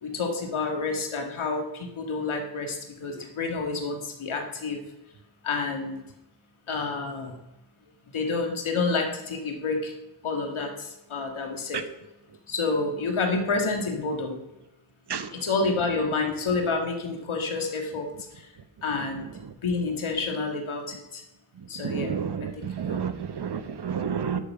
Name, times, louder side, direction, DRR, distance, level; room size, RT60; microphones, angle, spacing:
voice 1, 0.0-4.8 5.4-6.0 6.7-7.3 8.1-9.9 10.2-11.8 12.5-14.4 15.3-18.1 18.8-19.3 19.6-21.2 21.7-22.1 22.6-23.0, left 3 dB, 85° left, 1.9 m, -29 dB
voice 2, 21.8-24.4, right 7 dB, 55° right, 1.0 m, -30 dB
11.0 x 6.9 x 5.5 m
wide cardioid pair, 85°, 47 cm